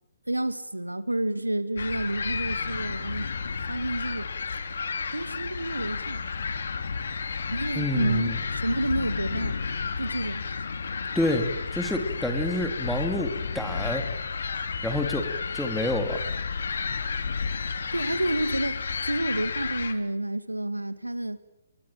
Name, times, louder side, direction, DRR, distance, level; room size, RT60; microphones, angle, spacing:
voice 1, 0.3-3.3 3.7-4.3 5.1-6.2 7.5-9.6 10.0-10.4 17.9-21.4, right 1 dB, 85° right, 13 dB, 2.0 m, -29 dB
sound 1, 1.8-19.9, left 5 dB, 55° left, 2.9 m, -32 dB
voice 2, 7.7-8.4 11.1-14.0 14.8-15.3 15.5-16.2, left 1 dB, ahead, 4 dB, 3.1 m, -28 dB
29.5 x 22.5 x 7.6 m, 0.88 s
figure-of-eight pair, 135°, 0 cm